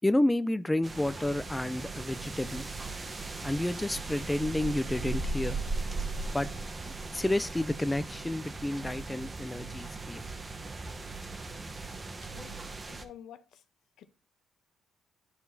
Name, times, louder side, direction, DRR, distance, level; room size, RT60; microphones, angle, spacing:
voice 1, 0.0-2.7 3.4-5.6 6.3-6.5 6.8-10.2, left 1 dB, 10° left, 0.4 m, -30 dB
sound 1, 0.8-13.0, right 3 dB, 25° right, 0.9 m, -38 dB
voice 2, 12.2-12.6 12.9-13.6 14.0-14.1, left 10 dB, 75° left, 0.7 m, -50 dB
11.0 x 4.7 x 2.7 m
cardioid pair, 90°, 0 cm